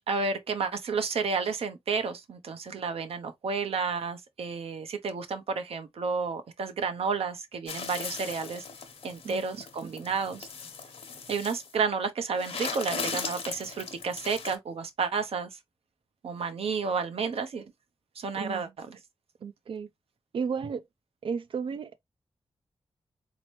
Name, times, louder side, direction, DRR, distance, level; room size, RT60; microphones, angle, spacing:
voice 1, 0.1-8.6 9.0-10.5 11.3-15.5 16.2-17.6 18.2-19.0, right 5 dB, 75° right, 0.8 m, -31 dB
sound 1, 7.7-11.7 12.3-14.5, left 5 dB, 70° left, 0.9 m, -38 dB
voice 2, 18.4-18.7 19.4-19.9 20.3-20.8 21.2-22.0, right 6 dB, 55° right, 0.4 m, -33 dB
4.2 x 2.9 x 3.0 m
wide cardioid pair, 175°, 10 cm